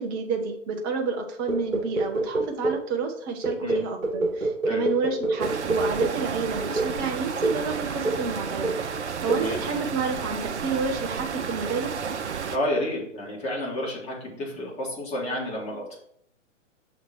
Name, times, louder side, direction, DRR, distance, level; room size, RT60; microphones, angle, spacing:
voice 1, 0.0-8.7 9.2-11.9, right 4 dB, 15° right, 4 dB, 0.6 m, -29 dB
sound 1, 1.5-2.9 3.4-6.3 6.8-7.0 7.4-7.7 8.0-8.3 8.6-8.9 9.3-9.5, right 2 dB, 90° right, 0.8 m, -27 dB
sound 2, 5.4-12.6, right 6 dB, 60° right, 0.7 m, -32 dB
voice 2, 12.5-16.0, left 1 dB, 15° left, -3 dB, 1.8 m, -30 dB
6.4 x 3.9 x 6.1 m, 0.69 s
figure-of-eight pair, 120°, 38 cm